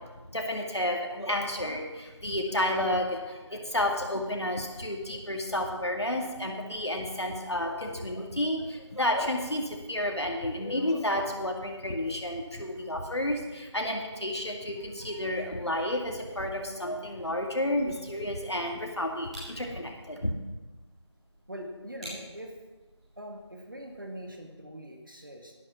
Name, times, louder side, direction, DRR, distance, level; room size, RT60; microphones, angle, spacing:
voice 1, 0.3-20.3, left 1 dB, 60° left, 1 dB, 2.3 m, -31 dB
sound 1, 17.8-24.5, equal, 10° right, 5.2 m, -51 dB
voice 2, 21.5-22.5 23.2-25.5, equal, 45° right, 2 dB, 1.9 m, -42 dB
12.0 x 11.5 x 5.9 m, 1.2 s
figure-of-eight pair, 175°, 16 cm